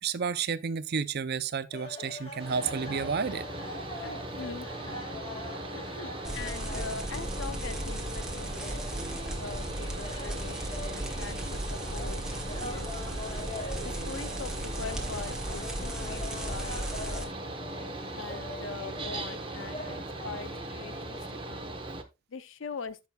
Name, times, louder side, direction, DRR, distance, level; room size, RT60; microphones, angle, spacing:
voice 1, 0.0-3.5, right 6 dB, 50° right, 0.5 m, -31 dB
sound 1, 1.7-21.4, left 2 dB, 25° left, 1.9 m, -44 dB
Mechanical fan, 2.4-22.0, right 2 dB, 25° right, 0.9 m, -39 dB
voice 2, 4.0-5.0 5.7-13.2 13.8-17.4 18.1-21.7 22.3-23.0, left 5 dB, 60° left, 0.6 m, -43 dB
sound 2, 6.2-17.2, right 1 dB, 5° right, 1.4 m, -36 dB
13.5 x 6.0 x 2.3 m
head